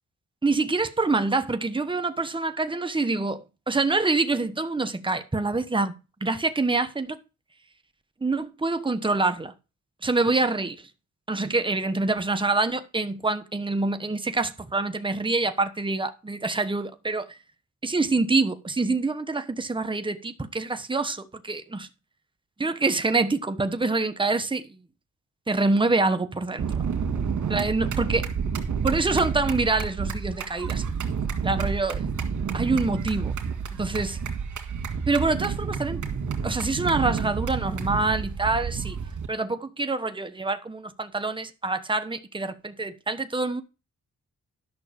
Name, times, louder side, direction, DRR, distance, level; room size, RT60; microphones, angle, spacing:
voice 1, 0.4-5.9 6.2-7.2 8.2-9.5 10.0-10.8 11.3-17.4 17.8-21.9 22.6-24.6 25.5-26.7 27.5-28.3 28.8-30.8 31.4-32.1 32.5-33.3 33.8-34.2 35.1-36.0 36.4-39.0 39.3-43.6, right 3 dB, 15° right, 1.1 m, -26 dB
sound 1, 26.6-39.3, right 6 dB, 80° right, 2.0 m, -29 dB
11.5 x 6.2 x 5.2 m
cardioid pair, 90°, 30 cm